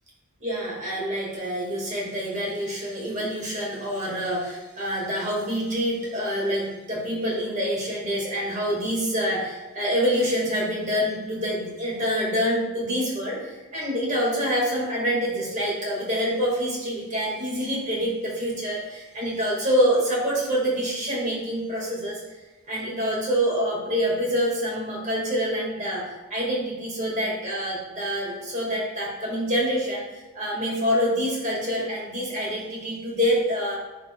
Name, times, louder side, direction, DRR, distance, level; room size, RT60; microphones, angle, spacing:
voice 1, 0.4-22.2 22.7-33.8, equal, 35° right, -3 dB, 2.0 m, -26 dB
10.5 x 4.8 x 2.3 m, 1.1 s
head